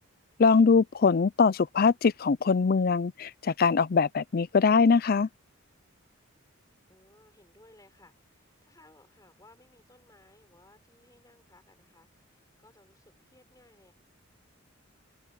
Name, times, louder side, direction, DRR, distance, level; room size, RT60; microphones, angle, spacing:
voice 1, 0.4-5.3, left 5 dB, 45° left, 0.4 m, -22 dB
voice 2, 6.9-13.9, left 2 dB, 15° left, 6.0 m, -60 dB
head